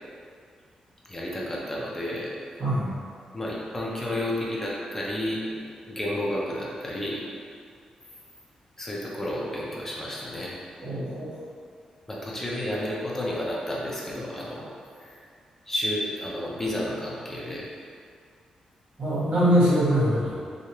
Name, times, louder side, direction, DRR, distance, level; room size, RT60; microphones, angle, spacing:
voice 1, 1.1-2.3 3.3-5.4 5.9-7.2 8.8-10.6 12.1-14.7 15.7-17.6, left 1 dB, 15° left, -5 dB, 0.6 m, -31 dB
voice 2, 2.6-2.9 10.8-11.3 19.0-20.3, equal, 55° right, -10 dB, 1.3 m, -22 dB
3.1 x 2.4 x 2.9 m, 2.2 s
cardioid pair, 90°, 2 cm